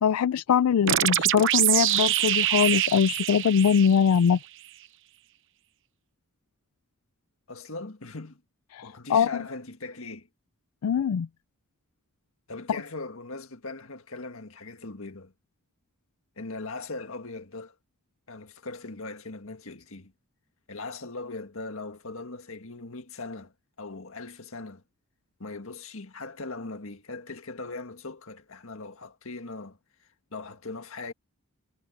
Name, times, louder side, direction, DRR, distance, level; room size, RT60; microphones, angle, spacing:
voice 1, 0.0-4.4 8.7-9.4 10.8-11.3, left 7 dB, 85° left, 0.4 m, -22 dB
sound 1, 0.9-4.4, right 13 dB, 60° right, 0.7 m, -25 dB
voice 2, 7.5-8.4 8.8-10.3 12.5-15.3 16.4-17.7 18.3-20.1 20.7-23.5 23.8-24.8 25.4-29.8 30.3-31.1, left 3 dB, 65° left, 1.8 m, -39 dB
head